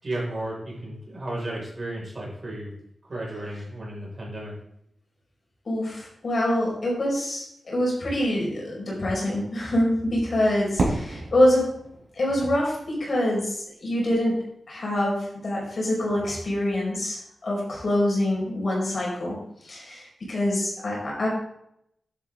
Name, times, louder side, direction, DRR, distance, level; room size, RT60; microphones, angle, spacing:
voice 1, 0.0-2.7 3.1-4.5, right 1 dB, 35° right, -4 dB, 5.4 m, -33 dB
voice 2, 5.7-11.7 12.2-14.4 14.7-19.4 19.6-21.3, left 1 dB, 45° left, -3 dB, 5.3 m, -25 dB
Fireworks, 10.8-13.6, right 2 dB, 55° right, 4.6 m, -31 dB
11.0 x 11.0 x 3.8 m, 0.74 s
wide cardioid pair, 155°, 0 cm